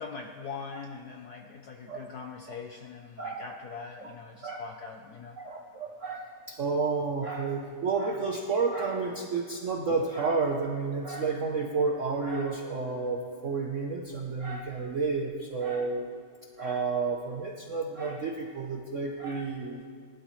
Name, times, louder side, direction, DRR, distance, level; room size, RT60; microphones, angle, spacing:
voice 1, 0.0-5.4, left 5 dB, 70° left, 3 dB, 0.9 m, -42 dB
voice 2, 5.4-16.1 16.6-19.8, right 4 dB, 65° right, 1 dB, 0.7 m, -31 dB
19.5 x 12.0 x 3.1 m, 2.1 s
omnidirectional pair, 2.4 m